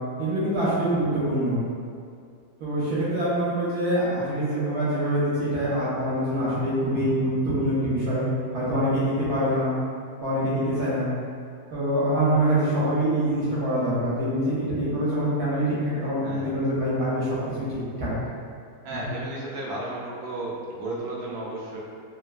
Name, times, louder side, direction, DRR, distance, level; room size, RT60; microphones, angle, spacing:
voice 1, 0.2-1.6 2.6-8.3 8.5-9.7 10.2-11.1 11.7-17.3 17.6-17.7 18.0-18.1, right 1 dB, 65° right, -10 dB, 1.1 m, -25 dB
voice 2, 16.2-16.6 18.8-21.8, right 2 dB, 80° right, -4 dB, 0.7 m, -34 dB
3.3 x 2.1 x 2.4 m, 2.3 s
omnidirectional pair, 2.0 m